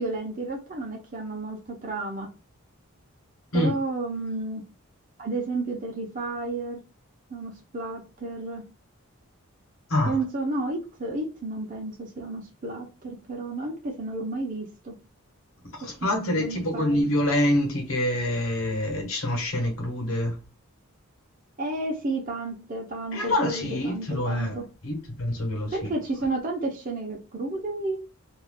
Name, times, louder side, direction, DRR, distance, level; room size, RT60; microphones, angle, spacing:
voice 1, 0.0-2.3 3.5-4.6 5.2-6.8 7.3-8.6 10.1-14.9 16.0-17.1 21.6-24.6 25.7-28.0, right 2 dB, 35° right, 0.8 m, -32 dB
voice 2, 15.8-20.4 23.1-24.6 24.8-25.9, left 1 dB, 65° left, 1.1 m, -26 dB
2.6 x 2.4 x 3.5 m
head